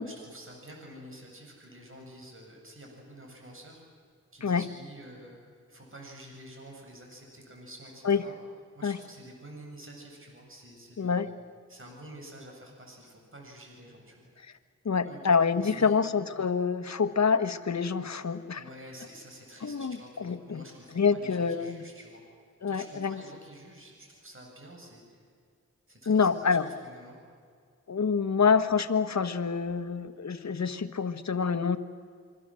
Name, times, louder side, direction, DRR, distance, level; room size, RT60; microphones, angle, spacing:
voice 1, 0.0-3.8 4.3-5.4 5.7-8.3 8.8-11.4 11.7-14.2 15.0-16.0 18.5-22.2 22.7-25.2 25.9-27.2, right 1 dB, 45° right, 0 dB, 7.5 m, -49 dB
voice 2, 11.0-11.3 14.8-18.6 19.6-20.6 20.9-21.8 22.6-23.2 26.1-26.7 27.9-31.8, left 5 dB, 65° left, 10 dB, 1.4 m, -26 dB
27.0 x 24.0 x 7.7 m, 2.2 s
cardioid pair, 55°, 29 cm